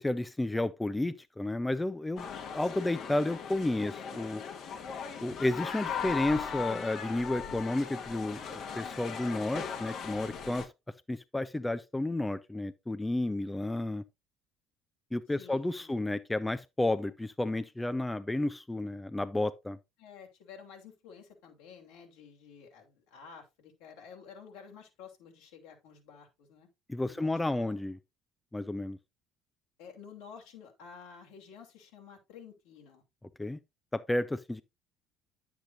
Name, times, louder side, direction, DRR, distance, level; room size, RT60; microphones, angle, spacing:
voice 1, 0.0-4.4 5.2-10.7 11.1-14.0 15.1-19.8 26.9-28.0 28.5-29.0 33.4-33.6 33.9-34.6, left 2 dB, 10° left, 0.7 m, -32 dB
sound 1, 2.2-10.7, left 7 dB, 55° left, 1.6 m, -38 dB
voice 2, 15.4-16.0 20.0-26.7 27.1-27.7 29.8-33.0, left 6 dB, 75° left, 3.1 m, -51 dB
10.0 x 8.1 x 2.6 m
hypercardioid pair, 60°, 0 cm